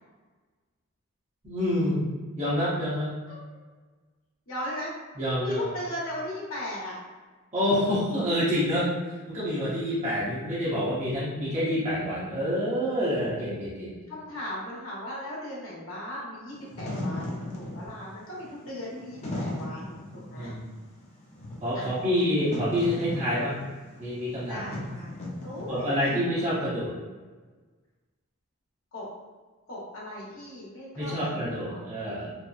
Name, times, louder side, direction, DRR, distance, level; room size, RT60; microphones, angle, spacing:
voice 1, 1.4-2.0 2.4-3.1 5.2-5.6 7.5-8.9 9.3-14.0 20.3-20.7 21.6-23.6 24.0-24.6 25.7-26.9 31.0-32.4, equal, 30° right, -10 dB, 0.8 m, -27 dB
voice 2, 4.5-4.9 5.3-7.0 14.1-20.5 21.7-22.3 24.5-25.1 25.4-26.5 28.9-29.1 29.7-31.8, left 1 dB, 65° left, -6 dB, 0.9 m, -37 dB
Wind / Fire, 16.5-26.1, left 1 dB, 30° left, 0.5 m, -37 dB
2.8 x 2.0 x 2.3 m, 1.4 s
head